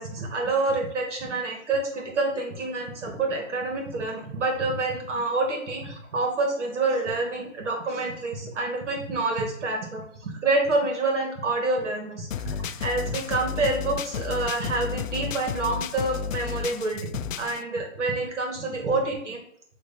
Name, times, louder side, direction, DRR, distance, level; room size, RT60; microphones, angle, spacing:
voice 1, 0.0-17.1 17.4-19.4, right 3 dB, 65° right, 2 dB, 2.3 m, -27 dB
sound 1, 12.3-17.6, left 8 dB, 85° left, 0.5 m, -32 dB
7.5 x 3.4 x 4.4 m, 0.69 s
hypercardioid pair, 140°, 38 cm